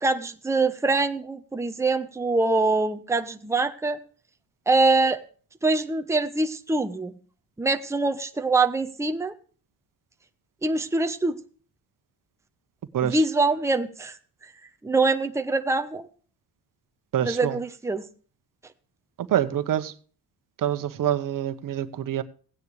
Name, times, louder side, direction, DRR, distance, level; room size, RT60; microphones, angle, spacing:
voice 1, 0.0-4.0 4.7-5.2 5.6-7.1 7.6-9.3 10.6-11.4 13.0-14.1 14.8-16.1 17.2-18.0, right 3 dB, 10° right, 6 dB, 0.9 m, -24 dB
voice 2, 17.1-17.6 19.3-19.9 20.6-22.2, right 10 dB, 60° right, 11 dB, 1.1 m, -26 dB
16.5 x 9.6 x 3.2 m, 0.41 s
cardioid pair, 125°, 36 cm